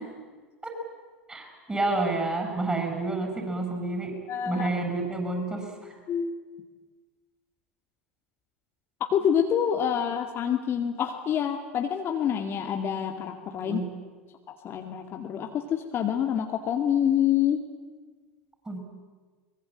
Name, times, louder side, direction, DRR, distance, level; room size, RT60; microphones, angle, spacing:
voice 1, 1.3-4.1 4.5-5.9 13.6-13.8 18.6-18.8, right 2 dB, 10° right, 3 dB, 7.8 m, -29 dB
voice 2, 4.3-4.7 6.1-6.3 9.0-13.8 14.5-17.6, left 9 dB, 35° left, 5 dB, 2.1 m, -27 dB
23.5 x 21.5 x 9.0 m, 1.4 s
figure-of-eight pair, 85°, 7 cm